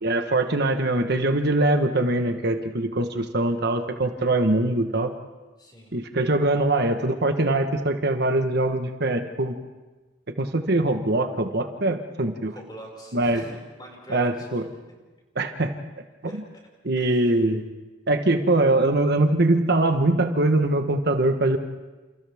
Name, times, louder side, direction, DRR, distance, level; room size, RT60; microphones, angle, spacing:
voice 1, 0.0-5.1 5.9-9.5 10.4-12.5 13.1-13.4 14.1-14.6 15.3-15.7 16.8-17.6 18.1-21.6, right 2 dB, 60° right, 6 dB, 1.3 m, -22 dB
voice 2, 5.6-6.0 12.5-14.5 16.3-16.4 17.0-17.5, equal, 25° left, -1 dB, 5.7 m, -43 dB
30.0 x 28.5 x 3.6 m, 1.2 s
head